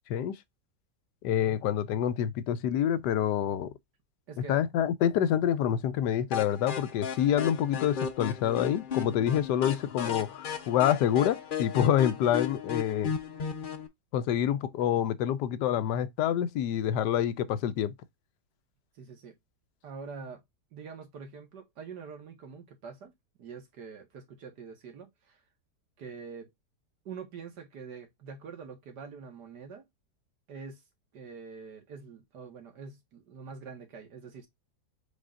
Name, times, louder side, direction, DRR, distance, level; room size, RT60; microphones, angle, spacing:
voice 1, 1.2-3.7 4.5-13.1 14.1-17.9, left 10 dB, 80° left, 1.2 m, -27 dB
voice 2, 4.3-4.6 11.8-11.9 19.0-19.4 19.8-20.4 20.7-23.1 23.4-25.4 26.0-26.5 27.1-29.8 30.5-30.8 31.1-34.5, right 5 dB, 70° right, 2.1 m, -45 dB
sound 1, 6.3-13.9, left 7 dB, 45° left, 0.7 m, -35 dB
5.0 x 4.2 x 2.4 m
omnidirectional pair, 1.8 m